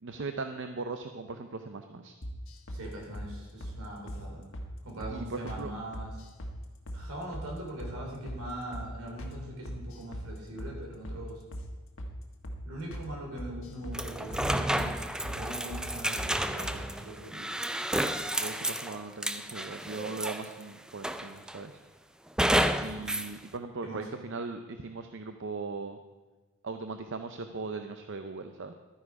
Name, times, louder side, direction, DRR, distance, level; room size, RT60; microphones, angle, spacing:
voice 1, 0.0-2.2 5.1-5.7 18.1-21.8 22.8-26.0 26.6-28.8, right 3 dB, 55° right, 7 dB, 0.6 m, -39 dB
sound 1, 2.2-2.8 3.1-3.3 3.6-3.8 4.1-4.2 4.5-4.7 5.0-5.2 5.5-5.6 5.9-6.6 6.9-7.0 7.3-7.5 7.8-8.0 8.3-8.4 8.7-8.9 9.2-9.4 9.7-10.3 10.6-10.7 11.0-11.2 11.5-11.7 12.0-12.1 12.4-12.6 12.9-13.1 13.4-14.0 14.3-14.5 14.8-14.9 15.2-15.4 15.7-15.9 16.2-16.3 16.6-16.8, equal, 60° left, 1.5 m, -39 dB
voice 2, 2.7-4.4 4.8-6.1 6.9-11.4 12.6-17.4 23.0-23.2 23.8-24.0, right 1 dB, 75° right, -1 dB, 3.7 m, -41 dB
sound 2, 13.9-20.6 21.0-21.6 22.4-23.3, right 1 dB, 5° right, 0.3 m, -31 dB
12.5 x 9.8 x 4.8 m, 1.2 s
head